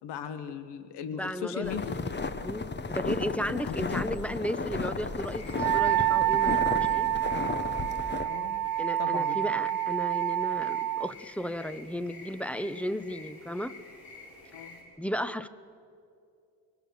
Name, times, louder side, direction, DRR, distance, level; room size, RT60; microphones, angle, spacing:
voice 1, 0.0-2.0 3.4-4.2 8.2-8.6 9.0-9.4 14.5-14.9, left 7 dB, 85° left, 11 dB, 1.3 m, -37 dB
voice 2, 1.1-1.8 2.4-7.1 8.8-13.7 15.0-15.5, equal, 5° left, 13 dB, 0.9 m, -34 dB
sound 1, 1.6-8.3, left 4 dB, 25° left, 1.0 m, -34 dB
sound 2, 5.2-14.8, left 3 dB, 70° left, 6.6 m, -50 dB
Wind instrument woodwind instrument, 5.5-11.1, right 14 dB, 60° right, 0.6 m, -27 dB
24.0 x 19.5 x 6.8 m, 2.5 s
cardioid pair, 90°, 40 cm